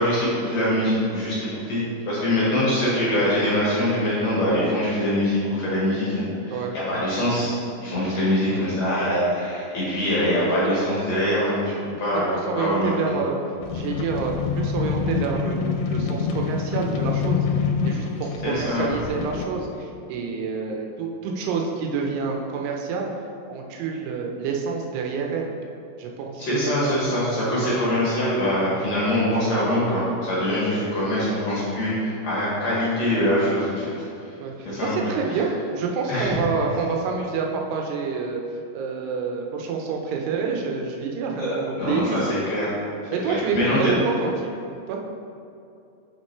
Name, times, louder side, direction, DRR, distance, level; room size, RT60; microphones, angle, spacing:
voice 1, 0.0-7.5 7.8-11.6 12.0-12.3 12.6-12.9 18.4-18.9 26.4-33.8 34.6-35.1 36.1-36.4 41.4-41.5 41.8-42.7 43.3-43.9, left 1 dB, 55° left, -8 dB, 2.2 m, -23 dB
voice 2, 6.5-7.1 8.4-8.7 10.9-11.0 12.3-13.4 13.7-17.5 17.9-23.1 23.5-25.5 26.0-26.5 30.7-30.9 34.4-38.4 38.7-42.2 43.1-44.5 44.9-45.0, right 5 dB, 90° right, 1 dB, 2.9 m, -28 dB
sound 1, 13.6-19.4, left 6 dB, 85° left, 2.6 m, -26 dB
6.1 x 6.1 x 4.5 m, 2.6 s
omnidirectional pair, 4.6 m